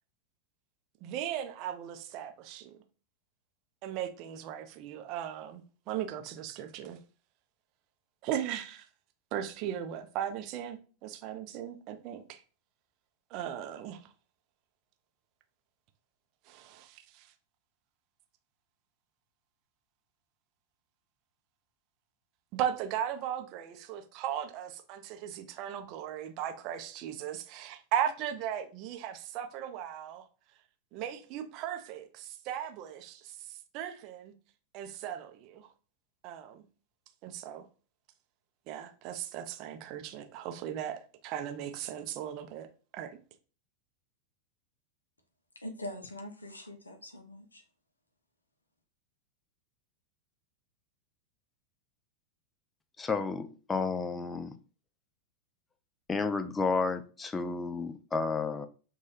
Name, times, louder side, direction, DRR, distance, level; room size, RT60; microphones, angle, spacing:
voice 1, 1.0-2.8 3.8-7.0 8.2-8.9 9.3-12.4 13.3-14.1 16.5-17.3 22.5-30.2 30.9-34.3 34.7-35.7 36.2-36.6 37.2-37.6 38.7-43.2, right 10 dB, 40° right, 0.5 m, -37 dB
voice 2, 45.6-47.6, left 1 dB, 80° left, 0.5 m, -43 dB
voice 3, 53.0-54.6 56.1-58.7, left 4 dB, 15° left, 0.3 m, -31 dB
3.0 x 2.3 x 2.8 m
figure-of-eight pair, 90°, 0 cm